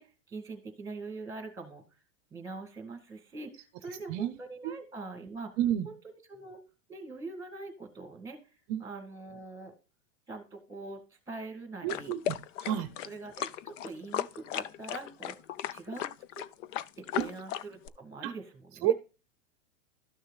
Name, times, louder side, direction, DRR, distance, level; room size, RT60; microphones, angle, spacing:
voice 1, 0.0-1.8 2.3-5.6 5.9-6.6 6.9-8.4 8.8-9.7 10.3-12.1 12.6-12.8 13.0-15.4 15.7-16.1 16.4-16.5 17.0-18.9, right 3 dB, 10° right, 6 dB, 1.9 m, -43 dB
voice 2, 5.6-5.9 8.7-8.8 11.8-12.9 17.2-17.3 18.2-18.3 18.8-18.9, right 11 dB, 40° right, 11 dB, 0.6 m, -30 dB
sound 1, 11.9-17.9, left 11 dB, 70° left, 0.7 m, -36 dB
13.0 x 6.4 x 2.3 m, 0.32 s
supercardioid pair, 145°, 40 cm